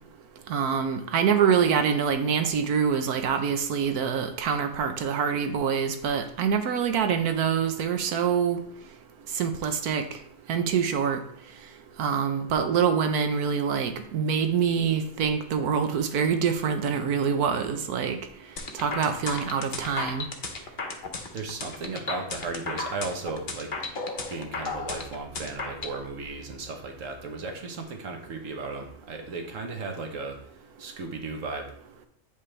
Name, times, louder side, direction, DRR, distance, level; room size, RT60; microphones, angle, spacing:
voice 1, 0.5-8.6 9.3-10.0 10.5-11.2 12.0-18.2 18.7-20.2, right 7 dB, 80° right, 7 dB, 1.3 m, -25 dB
sound 1, 18.6-26.0, left 3 dB, 40° left, 0.9 m, -34 dB
voice 2, 21.3-23.7 24.3-30.4 30.8-31.7, right 3 dB, 60° right, 4 dB, 1.5 m, -35 dB
8.7 x 5.1 x 3.3 m, 0.64 s
omnidirectional pair, 1.6 m